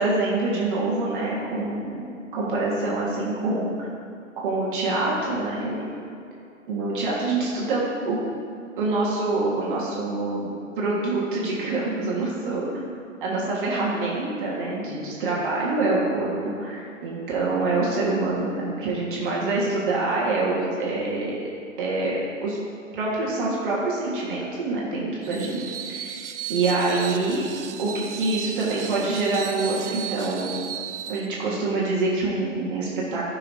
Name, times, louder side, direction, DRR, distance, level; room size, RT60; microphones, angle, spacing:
voice 1, 0.0-3.7 4.4-5.8 6.7-8.2 8.8-10.5 10.8-12.9 13.2-21.4 21.8-22.6 22.9-27.5 27.8-30.6 31.1-33.2, right 2 dB, 40° right, -5 dB, 1.6 m, -26 dB
Screech, 25.2-31.3, right 9 dB, 65° right, 0.5 m, -35 dB
12.5 x 5.8 x 2.7 m, 2.4 s
figure-of-eight pair, 125°, 39 cm